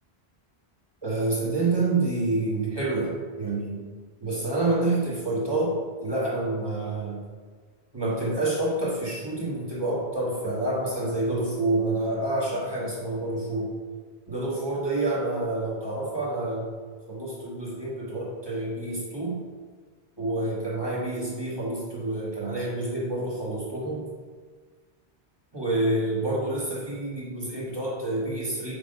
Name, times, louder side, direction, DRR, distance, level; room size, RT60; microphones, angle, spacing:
voice 1, 1.0-3.8 4.2-7.2 7.9-13.7 14.3-16.7 17.1-19.4 20.2-24.0 25.5-28.7, right 2 dB, 25° right, -6 dB, 1.5 m, -28 dB
4.9 x 3.7 x 5.4 m, 1.5 s
omnidirectional pair, 1.1 m